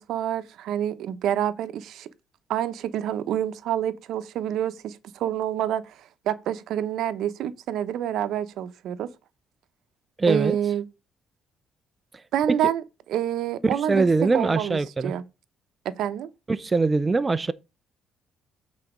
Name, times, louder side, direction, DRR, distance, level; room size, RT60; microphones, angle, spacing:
voice 1, 0.0-2.1 2.5-6.0 6.3-9.1 10.3-10.9 12.3-14.1 14.3-15.2 15.8-16.3, right 10 dB, 75° right, 0.7 m, -27 dB
voice 2, 10.2-10.6 12.5-12.6 13.7-15.1 16.5-17.5, right 3 dB, 20° right, 0.4 m, -22 dB
8.0 x 4.1 x 4.9 m
cardioid pair, 110°, 0 cm